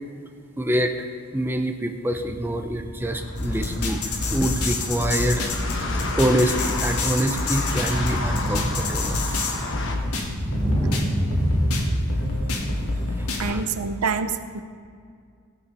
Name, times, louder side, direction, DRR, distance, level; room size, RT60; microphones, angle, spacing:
voice 1, 0.6-0.9 1.3-4.0 4.3-5.5 6.1-9.2 13.2-13.6, right 1 dB, 10° right, 4 dB, 0.6 m, -25 dB
sound 1, 2.1-13.1, equal, 10° left, 3.1 m, -29 dB
sound 2, 3.0-10.0, left 3 dB, 55° left, 1.2 m, -33 dB
sound 3, 3.4-13.5, left 2 dB, 80° left, 1.7 m, -28 dB
voice 2, 12.2-12.8 13.4-14.6, right 5 dB, 85° right, 10 dB, 0.7 m, -28 dB
16.5 x 7.0 x 5.5 m, 2.2 s
head